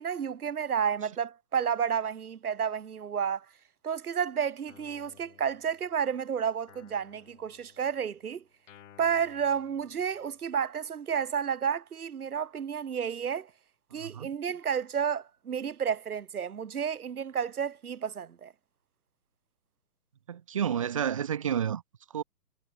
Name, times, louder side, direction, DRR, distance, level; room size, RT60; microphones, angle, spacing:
voice 1, 0.0-3.4 3.8-8.4 9.0-13.5 13.9-18.5, right 7 dB, 70° right, 1.6 m, -31 dB
Guitar, 4.7-6.2 6.7-10.6, left 9 dB, 55° left, 6.1 m, -58 dB
voice 2, 13.9-14.3 20.3-21.8 22.1-22.2, right 8 dB, 25° right, 0.5 m, -30 dB
figure-of-eight pair, 130°, 46 cm